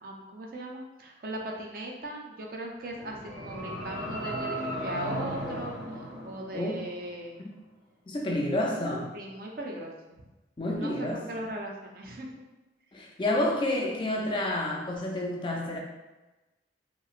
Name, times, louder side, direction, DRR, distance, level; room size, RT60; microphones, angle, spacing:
voice 1, 0.0-7.4 9.1-10.2 10.8-12.3, right 1 dB, 50° right, -1 dB, 0.5 m, -39 dB
sound 1, 2.8-7.0, right 1 dB, 75° right, 0.9 m, -36 dB
voice 2, 8.1-9.1 10.6-11.2 12.9-15.8, left 1 dB, 25° left, 0 dB, 0.3 m, -29 dB
2.9 x 2.8 x 2.4 m, 1.1 s
head